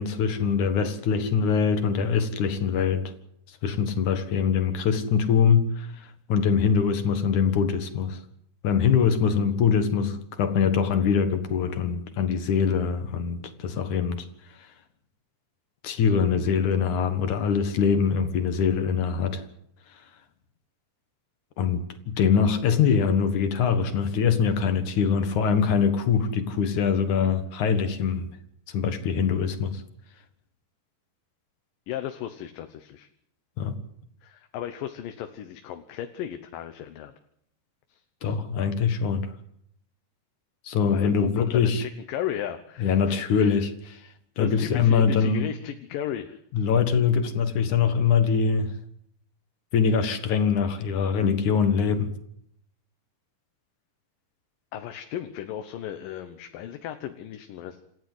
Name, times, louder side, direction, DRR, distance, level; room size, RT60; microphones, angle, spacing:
voice 1, 0.0-3.0 3.5-8.2 8.6-14.2 15.8-19.4 21.6-28.3 28.7-29.8 33.6-33.8 38.2-39.3 40.6-41.8 42.8-44.0 44.4-45.4 46.5-48.7 49.7-52.1, left 6 dB, 65° left, 2.9 m, -23 dB
voice 2, 31.9-33.1 34.2-37.1 37.9-38.4 40.9-43.6 44.4-46.4 54.7-57.8, left 10 dB, 80° left, 2.8 m, -35 dB
28.0 x 14.5 x 8.0 m
omnidirectional pair, 3.9 m